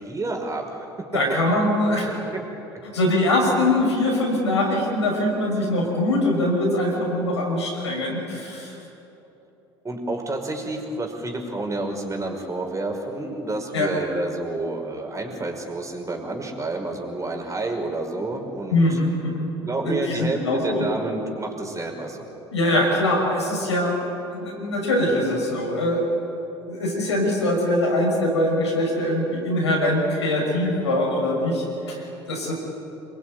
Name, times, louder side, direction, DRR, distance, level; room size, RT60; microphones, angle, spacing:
voice 1, 0.0-1.1 2.3-2.4 9.8-19.0 19.6-22.3, right 2 dB, 20° right, 3 dB, 5.6 m, -29 dB
voice 2, 1.1-2.1 2.9-8.7 13.7-13.9 18.7-19.5 19.8-20.8 22.5-24.0 24.3-26.1 26.7-32.5, left 1 dB, 85° left, -2 dB, 6.7 m, -22 dB
27.0 x 22.5 x 9.4 m, 3.0 s
hypercardioid pair, 65°, 14 cm